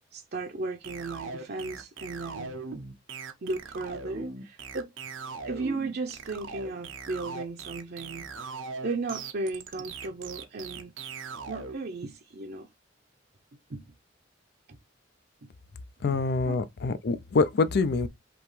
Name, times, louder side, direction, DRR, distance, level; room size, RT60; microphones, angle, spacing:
voice 1, 0.1-2.6 3.4-4.9 5.4-8.5 8.8-10.9 11.5-12.7 13.7-13.8 14.7-14.8 15.4-15.5 16.0-16.2 16.4-16.5, right 3 dB, 55° right, 0.7 m, -35 dB
sound 1, 0.8-11.8, right 4 dB, 90° right, 0.8 m, -39 dB
voice 2, 16.0-18.1, left 4 dB, 60° left, 0.5 m, -25 dB
5.1 x 2.9 x 3.1 m
head